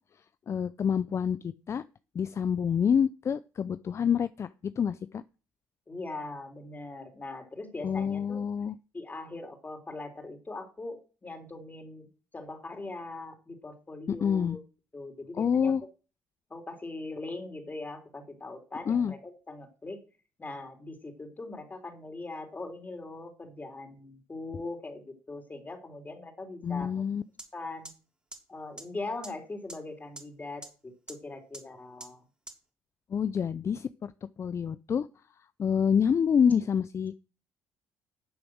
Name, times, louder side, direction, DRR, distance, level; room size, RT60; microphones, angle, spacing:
voice 1, 0.5-1.8 2.1-5.2 7.8-8.7 14.1-14.6 15.4-15.8 18.9-19.1 26.6-27.2 33.1-34.1 34.4-35.1 35.6-37.2, left 7 dB, 40° left, 15 dB, 0.5 m, -27 dB
voice 2, 5.9-8.4 8.9-12.1 12.3-14.6 14.9-15.7 16.5-20.0 20.4-27.0 27.5-27.9 28.5-32.2, left 2 dB, 25° left, 4 dB, 3.6 m, -41 dB
sound 1, 27.4-27.5 27.8-27.9 28.3-28.4 28.8-28.9 29.2-29.3 29.7-29.8 30.2-30.3 30.6-30.7 31.1-31.2 31.5-31.6 32.0-32.1 32.5-32.6, right 2 dB, 15° right, 3.2 m, -42 dB
12.0 x 7.0 x 6.4 m, 0.35 s
supercardioid pair, 65°, 7 cm